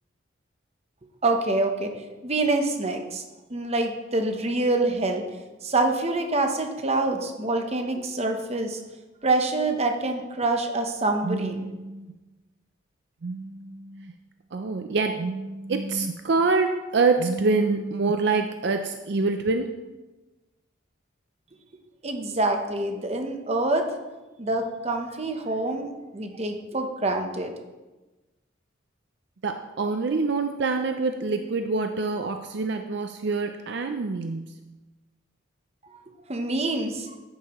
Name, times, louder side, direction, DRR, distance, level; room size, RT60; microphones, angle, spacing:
voice 1, 1.2-3.2 3.5-5.2 5.6-8.8 9.2-11.7 22.0-23.9 24.4-27.5 36.3-37.2, right 2 dB, 30° right, 5 dB, 0.9 m, -26 dB
voice 2, 11.2-12.1 13.2-14.1 14.5-19.7 29.4-34.6, right 3 dB, 60° right, 6 dB, 0.5 m, -26 dB
11.0 x 9.2 x 3.1 m, 1.1 s
head